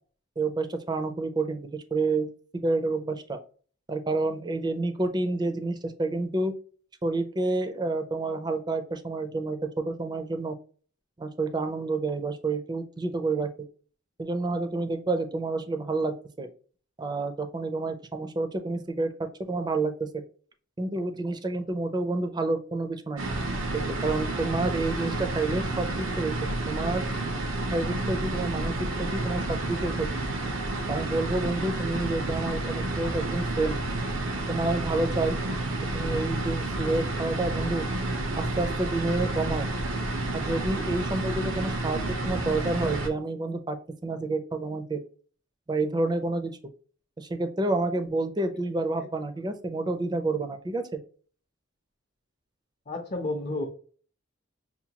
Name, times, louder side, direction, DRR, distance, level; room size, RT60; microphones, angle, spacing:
voice 1, 0.4-3.4 3.9-6.5 7.0-10.6 11.2-13.5 14.2-16.5 17.0-19.1 19.4-20.2 20.8-23.3 23.7-26.3 26.7-27.0 27.7-30.1 30.9-33.8 34.5-35.4 35.9-37.9 38.4-39.7 40.3-43.8 44.0-45.0 45.7-46.6 47.2-51.0, right 2 dB, 20° right, 9 dB, 0.5 m, -29 dB
sound 1, 23.2-43.1, right 2 dB, 85° right, 0.7 m, -30 dB
voice 2, 52.9-53.7, left 2 dB, 40° left, 0 dB, 0.6 m, -31 dB
5.6 x 2.2 x 2.8 m, 0.41 s
head